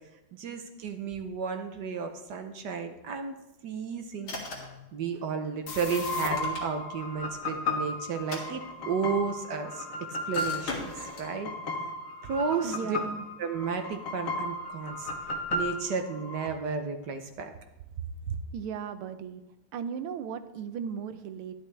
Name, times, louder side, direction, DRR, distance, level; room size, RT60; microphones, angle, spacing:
voice 1, 0.4-3.4 3.6-4.4 4.9-9.8 10.3-10.9 11.2-11.5 12.2-13.0 13.4-15.1 15.5-17.5 18.3-18.4, right 5 dB, 65° right, 6 dB, 1.1 m, -33 dB
sound 1, 4.2-4.8 6.1-7.0 8.1-9.1 10.3-11.3, left 2 dB, 70° left, 2.7 m, -39 dB
sound 2, 5.7-16.5, left 2 dB, 45° left, 1.2 m, -35 dB
voice 2, 12.6-13.3 18.5-19.4 19.7-21.5, right 7 dB, 80° right, 10 dB, 1.5 m, -37 dB
11.0 x 11.0 x 3.3 m, 0.94 s
omnidirectional pair, 2.4 m